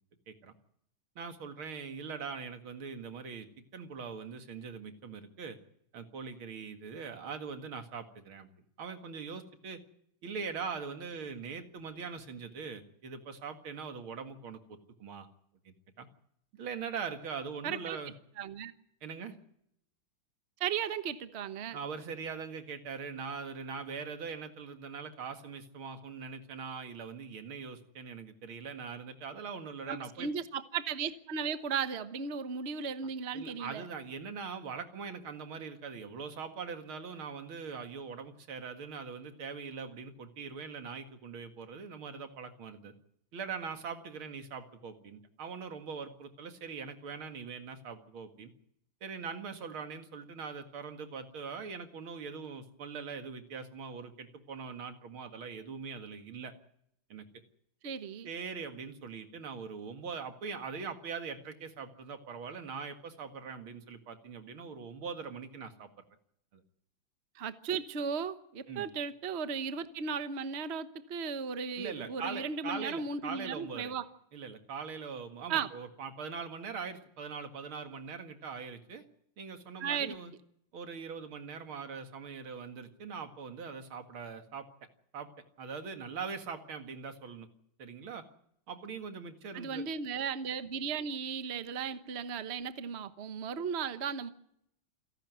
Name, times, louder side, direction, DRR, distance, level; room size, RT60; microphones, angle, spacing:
voice 1, 1.2-3.5 3.7-5.6 5.9-8.5 8.8-9.8 10.2-15.3 15.6-16.1 16.5-18.1 19.0-19.4 21.7-30.3 33.3-42.9 43.3-48.5 49.0-56.5 57.1-57.3 58.3-65.9 66.5-66.6 68.7-68.9 71.8-73.9 74.3-79.0 79.4-80.3 80.7-84.7 85.1-85.3 85.6-87.5 87.8-88.2 88.7-89.9, right 5 dB, 80° right, 7 dB, 2.8 m, -42 dB
voice 2, 17.6-18.0 18.4-18.7 20.6-21.8 29.9-33.8 57.8-58.3 67.3-74.0 75.5-75.7 79.8-80.2 89.5-94.3, right 6 dB, 40° right, 11 dB, 1.2 m, -36 dB
28.0 x 11.5 x 9.3 m, 0.74 s
omnidirectional pair, 2.3 m